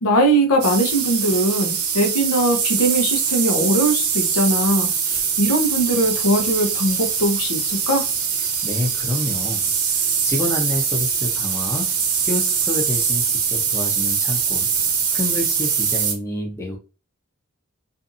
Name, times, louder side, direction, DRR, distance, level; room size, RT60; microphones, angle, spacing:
voice 1, 0.0-8.1, right 1 dB, 90° left, 0.8 m, -20 dB
sound 1, 0.6-16.1, right 6 dB, 80° right, 0.7 m, -23 dB
voice 2, 8.6-9.6 10.2-11.9 12.2-14.7 15.1-16.8, left 1 dB, 10° left, 0.6 m, -27 dB
2.6 x 2.5 x 2.6 m
head